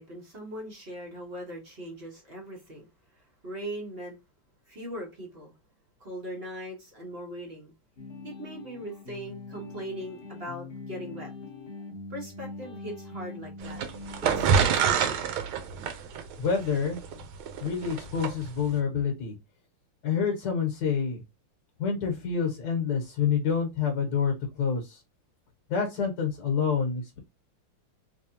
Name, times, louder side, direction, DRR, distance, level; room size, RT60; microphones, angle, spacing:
voice 1, 0.0-2.9 3.1-4.2 4.7-5.5 6.0-7.7 8.2-11.3 12.1-13.8 14.2-15.3, equal, 40° right, 1.0 m, -40 dB
sound 1, 8.0-14.5, left 3 dB, 85° left, 0.5 m, -42 dB
sound 2, 13.6-18.3, right 7 dB, 80° right, 1.5 m, -26 dB
voice 2, 16.4-17.2 17.6-19.3 20.0-21.2 21.8-25.0 25.7-27.2, left 6 dB, 60° left, 1.4 m, -28 dB
3.4 x 3.3 x 2.7 m
omnidirectional pair, 2.3 m